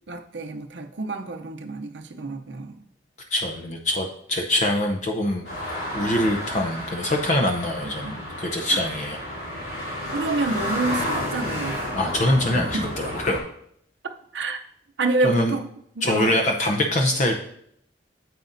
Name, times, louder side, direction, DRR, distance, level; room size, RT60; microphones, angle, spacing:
voice 1, 0.1-2.8 8.7-8.8 10.1-11.8 12.4-12.9 14.3-14.6 15.0-15.7 16.0-16.4, right 2 dB, 80° right, 0.7 m, -28 dB
voice 2, 3.3-5.5 5.9-9.2 11.9-13.4 15.2-15.6 16.0-17.4, left 1 dB, 40° left, 0.7 m, -24 dB
sound 1, 5.4-13.4, equal, 70° left, 3.2 m, -31 dB
9.2 x 7.2 x 2.6 m
head